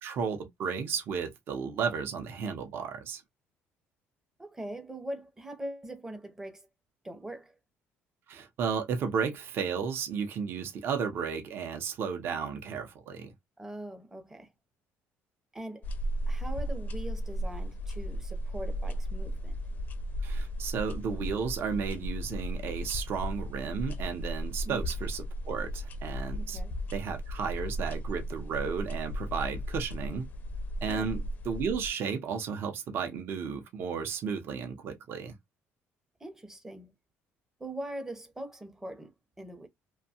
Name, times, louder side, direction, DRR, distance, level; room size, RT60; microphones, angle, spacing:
voice 1, 0.0-3.2 8.3-13.3 20.2-26.6 26.9-30.3 30.8-35.4, right 6 dB, 50° right, 0.7 m, -33 dB
voice 2, 4.4-6.7 7.0-7.5 13.6-14.5 15.5-15.9 16.3-19.6 24.6-24.9 26.4-26.8 30.8-31.1 36.2-36.9 37.6-39.7, right 1 dB, 10° right, 0.6 m, -42 dB
sound 1, 15.8-31.9, equal, 40° left, 0.4 m, -35 dB
2.6 x 2.2 x 2.7 m
cardioid pair, 140°, 5 cm